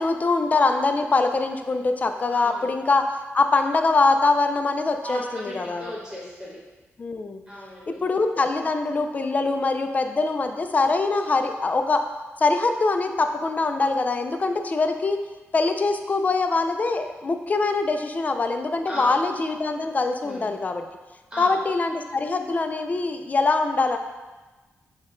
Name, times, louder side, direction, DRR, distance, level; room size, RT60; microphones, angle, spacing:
voice 1, 0.0-3.0 3.3-5.9 7.0-7.4 7.9-12.0 12.4-15.2 15.5-20.8 21.4-24.0, left 3 dB, 35° left, 6 dB, 0.3 m, -23 dB
voice 2, 2.3-2.7 5.0-6.6 7.5-8.0 18.9-19.2 20.2-20.5 21.3-21.6, equal, 5° right, -7 dB, 1.1 m, -36 dB
6.1 x 2.1 x 3.7 m, 1.2 s
wide cardioid pair, 120°, 5 cm